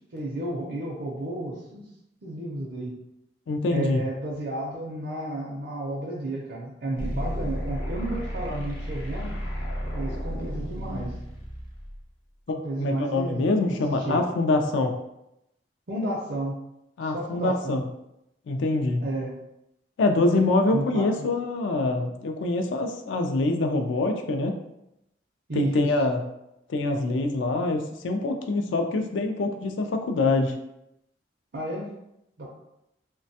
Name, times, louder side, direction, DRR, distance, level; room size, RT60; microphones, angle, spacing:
voice 1, 0.1-1.8 2.2-2.9 3.7-9.3 9.9-11.1 12.6-13.4 13.9-14.2 15.9-16.5 17.0-17.8 19.0-19.3 20.7-21.3 25.5-25.9 31.5-31.9 32.4-32.5, right 1 dB, 55° right, -4 dB, 0.5 m, -32 dB
voice 2, 3.5-4.0 12.5-14.9 17.0-17.8 18.5-19.0 20.0-24.6 25.5-26.2 26.7-30.5, left 2 dB, 80° left, 5 dB, 0.4 m, -25 dB
sound 1, 7.0-12.0, equal, 50° left, 0.8 m, -32 dB
3.1 x 2.2 x 2.7 m, 0.84 s
head